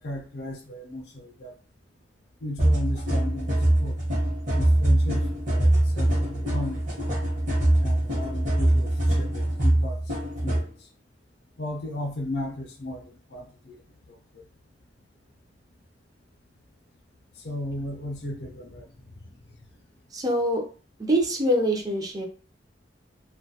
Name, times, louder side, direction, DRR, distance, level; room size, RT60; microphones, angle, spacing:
voice 1, 0.0-1.5 2.4-4.0 4.5-5.2 5.5-6.8 7.8-10.0 10.4-10.7 11.6-13.8 14.3-14.4 17.4-18.8, left 1 dB, 60° left, 3 dB, 0.5 m, -35 dB
sound 1, 2.6-10.6, right 1 dB, 45° right, 0.9 m, -23 dB
voice 2, 20.1-20.6 21.1-22.2, equal, 20° right, 1 dB, 0.5 m, -24 dB
2.2 x 2.2 x 2.7 m, 0.37 s
head